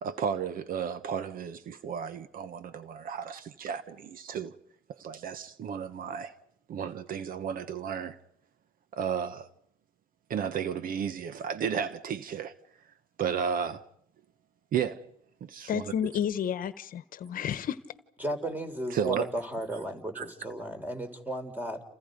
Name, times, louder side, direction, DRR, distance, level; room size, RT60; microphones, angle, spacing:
voice 1, 0.0-4.5 4.9-6.3 6.7-8.2 8.9-9.5 10.3-12.5 13.2-13.8 14.7-15.1 15.4-15.8 18.9-19.3 20.1-20.2, right 7 dB, 55° right, 1.2 m, -33 dB
voice 2, 15.7-17.8, left 9 dB, 55° left, 1.2 m, -31 dB
voice 3, 18.2-21.8, right 1 dB, 10° right, 3.7 m, -34 dB
29.5 x 28.5 x 5.3 m
cardioid pair, 110°, 17 cm